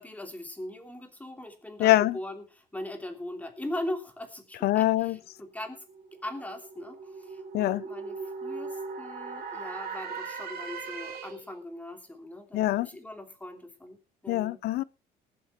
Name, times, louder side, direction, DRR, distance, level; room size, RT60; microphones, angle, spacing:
voice 1, 0.0-5.8 6.1-14.6, left 1 dB, 10° left, 2.9 m, -40 dB
voice 2, 1.8-2.2 4.6-5.2 7.5-7.8 12.5-12.9 14.3-14.8, left 15 dB, 70° left, 0.6 m, -24 dB
sound 1, 5.4-11.6, right 4 dB, 65° right, 3.2 m, -39 dB
19.0 x 7.7 x 4.4 m
cardioid pair, 110°, 17 cm